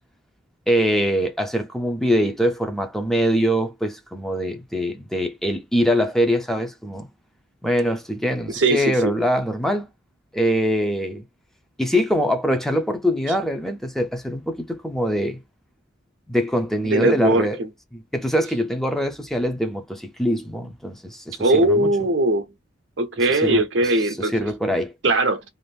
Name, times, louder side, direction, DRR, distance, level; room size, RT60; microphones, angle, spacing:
voice 1, 0.7-7.1 7.6-9.9 10.3-11.2 11.8-15.4 16.3-17.6 17.9-21.9 23.3-24.9, equal, ahead, 0.5 m, -23 dB
voice 2, 8.5-9.1 16.8-17.7 21.4-22.5 23.0-24.3 25.0-25.4, right 1 dB, 65° right, 0.6 m, -20 dB
2.6 x 2.5 x 3.3 m
head